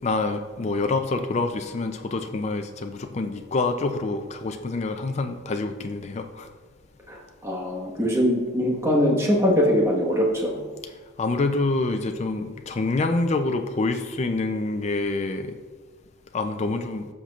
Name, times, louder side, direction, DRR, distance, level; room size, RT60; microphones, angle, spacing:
voice 1, 0.0-6.5 11.2-15.5 16.3-17.1, left 3 dB, 35° left, 5 dB, 0.4 m, -26 dB
voice 2, 7.1-10.6, equal, 15° right, -2 dB, 1.3 m, -22 dB
13.5 x 5.9 x 2.4 m, 1.4 s
head